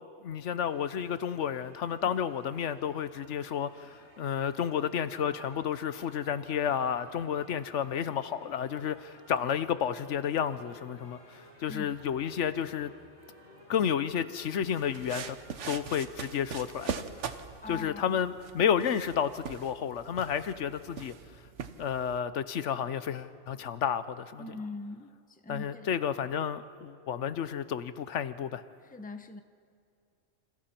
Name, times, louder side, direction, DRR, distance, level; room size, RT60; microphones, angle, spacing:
voice 1, 0.2-12.9 13.7-15.4 15.7-17.0 17.7-21.1 21.8-24.6 25.5-28.6, left 8 dB, 80° left, 13 dB, 1.1 m, -31 dB
sound 1, 0.6-15.8, equal, 30° left, 5.5 m, -56 dB
sound 2, 14.7-22.2, right 6 dB, 75° right, 1.3 m, -42 dB
voice 2, 17.6-18.2 24.4-25.9 28.8-29.4, left 3 dB, 10° left, 7 dB, 0.8 m, -42 dB
29.0 x 27.0 x 4.4 m, 2.5 s
omnidirectional pair, 1.2 m